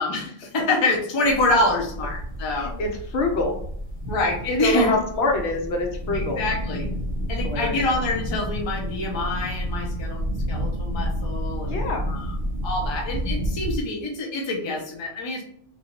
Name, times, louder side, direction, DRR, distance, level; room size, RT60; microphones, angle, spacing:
voice 1, 0.0-2.7 4.1-4.9 6.1-6.9 7.3-10.2 10.5-11.7 12.1-12.2 12.6-15.4, left 2 dB, 35° left, 0 dB, 0.5 m, -26 dB
sound 1, 1.2-13.8, equal, 20° right, 0.8 m, -30 dB
voice 2, 2.5-3.6 4.6-6.4 7.4-7.8 11.6-12.1, left 2 dB, 70° left, 2 dB, 0.9 m, -25 dB
2.6 x 2.4 x 3.0 m, 0.64 s
omnidirectional pair, 1.2 m